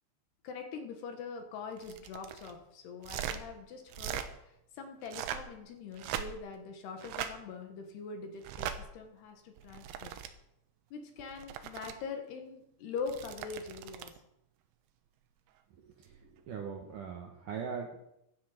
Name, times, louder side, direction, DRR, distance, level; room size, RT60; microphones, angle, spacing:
voice 1, 0.4-4.2 4.8-10.1 10.9-14.1, left 5 dB, 65° left, 5 dB, 3.3 m, -43 dB
sound 1, 1.8-2.5 3.0-3.4 3.9-4.3 5.0-5.5 5.9-6.5 7.0-7.3 8.4-8.8 9.6-10.3 11.2-11.9 13.0-14.2 16.0-16.2, right 10 dB, 85° right, 3.4 m, -40 dB
voice 2, 16.5-18.0, right 6 dB, 65° right, 1 dB, 2.1 m, -40 dB
15.5 x 12.0 x 5.1 m, 0.82 s
omnidirectional pair, 5.4 m